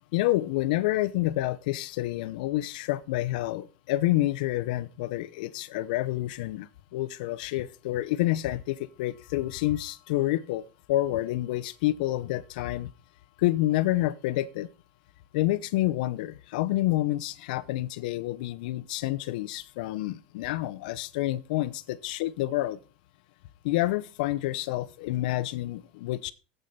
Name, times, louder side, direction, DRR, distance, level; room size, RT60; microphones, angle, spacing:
voice 1, 0.1-10.6 10.9-12.9 13.4-14.7 15.3-22.8 23.6-26.3, left 16 dB, 60° left, 0.7 m, -28 dB
8.2 x 7.4 x 5.4 m
supercardioid pair, 170°, 5 cm